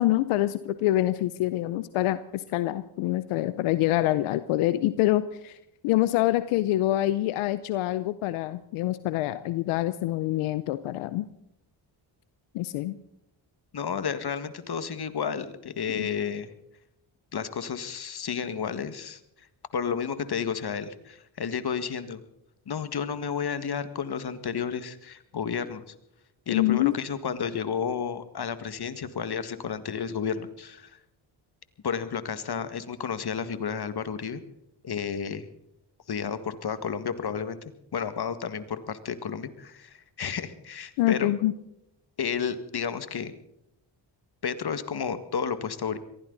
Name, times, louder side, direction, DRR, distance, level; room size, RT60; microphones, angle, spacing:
voice 1, 0.0-5.6 5.8-11.3 12.5-13.0 15.9-16.1 26.5-26.9 41.0-41.5, left 15 dB, 90° left, 14 dB, 0.7 m, -26 dB
voice 2, 13.7-16.5 17.3-19.2 19.7-22.2 22.7-25.9 26.5-31.0 31.8-34.4 34.8-35.5 36.1-37.6 37.9-41.3 42.2-43.3 44.4-46.0, left 7 dB, 50° left, 12 dB, 1.9 m, -31 dB
22.5 x 16.0 x 4.0 m, 0.81 s
supercardioid pair, 55°, 49 cm